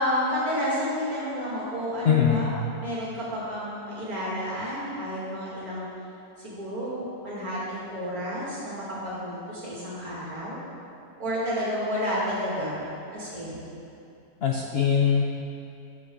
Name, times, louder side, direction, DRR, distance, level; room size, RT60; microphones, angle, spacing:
voice 1, 0.0-2.5 2.8-5.9 6.4-10.6 11.2-12.8 13.1-13.6, equal, 65° right, -7 dB, 2.9 m, -30 dB
voice 2, 2.0-2.5 14.4-15.2, left 7 dB, 60° left, 0 dB, 0.6 m, -21 dB
11.5 x 7.3 x 3.9 m, 2.7 s
omnidirectional pair, 1.7 m